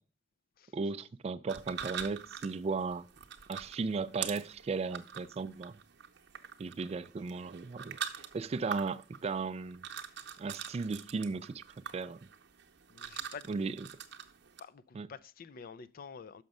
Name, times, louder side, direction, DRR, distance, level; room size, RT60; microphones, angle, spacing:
voice 1, 0.7-3.1 3.5-5.8 6.6-8.0 8.3-9.9 10.4-12.3 13.5-13.7 15.0-15.1, right 4 dB, 30° right, 0.3 m, -36 dB
sound 1, 1.5-14.6, right 8 dB, 60° right, 0.8 m, -45 dB
voice 2, 12.9-13.6 14.6-16.4, left 5 dB, 45° left, 0.4 m, -48 dB
6.3 x 5.8 x 5.3 m
head